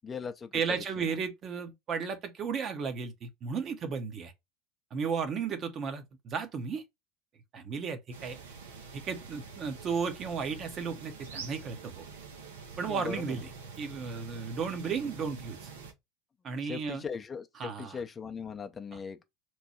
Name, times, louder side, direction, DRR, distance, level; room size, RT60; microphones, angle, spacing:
voice 1, 0.0-0.5 1.0-1.2 12.9-13.3 16.6-19.2, left 6 dB, 25° left, 0.5 m, -39 dB
voice 2, 0.5-4.3 4.9-6.8 7.5-8.4 8.9-12.0 12.8-13.5 13.8-15.7 16.4-17.0 17.6-18.0, right 5 dB, 40° right, 0.8 m, -34 dB
sound 1, 8.1-15.9, right 5 dB, 75° right, 0.8 m, -46 dB
3.0 x 2.2 x 4.2 m
hypercardioid pair, 80°, 0 cm